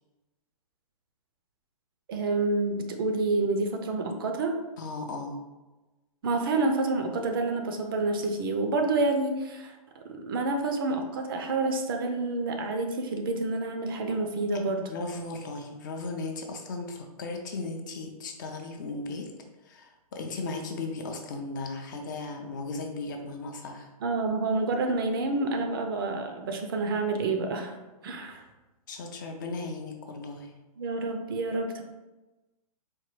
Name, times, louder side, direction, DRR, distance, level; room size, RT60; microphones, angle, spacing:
voice 1, 2.1-4.6 6.2-9.8 10.1-14.9 24.0-27.8 28.0-28.4 30.8-31.8, right 3 dB, 40° right, 4 dB, 0.4 m, -28 dB
voice 2, 4.8-5.4 14.5-19.3 19.6-23.9 28.9-30.5, left 3 dB, 30° left, 4 dB, 0.4 m, -36 dB
4.3 x 2.2 x 3.1 m, 1.1 s
hypercardioid pair, 155°, 19 cm